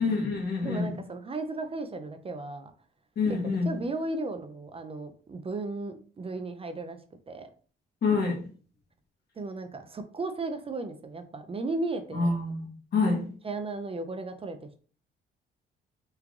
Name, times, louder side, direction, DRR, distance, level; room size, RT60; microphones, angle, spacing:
voice 1, 0.0-1.0 3.2-3.7 8.0-8.4 12.1-13.3, left 4 dB, 55° left, 1.3 m, -27 dB
voice 2, 0.6-2.7 3.7-7.0 7.3-7.5 9.4-12.3 13.4-14.8, right 2 dB, 30° right, 0.4 m, -35 dB
3.4 x 3.1 x 2.4 m
cardioid pair, 90°, 20 cm